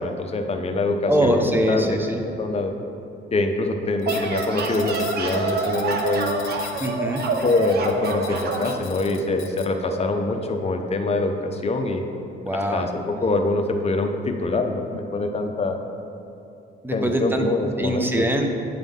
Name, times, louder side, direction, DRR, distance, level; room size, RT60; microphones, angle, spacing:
voice 1, 0.0-2.0 2.4-2.7 3.3-6.3 7.4-12.1 12.7-15.8 16.9-18.2, left 2 dB, 30° left, 5 dB, 0.6 m, -24 dB
voice 2, 1.1-2.2 6.8-7.3 12.4-13.0 16.8-17.5 17.8-18.5, equal, 10° right, 4 dB, 0.6 m, -23 dB
sound 1, 3.8-8.8, right 3 dB, 55° right, 0.6 m, -27 dB
sound 2, 4.0-9.7, left 9 dB, 90° left, 0.6 m, -40 dB
9.1 x 3.6 x 3.6 m, 2.8 s
cardioid pair, 90°, 20 cm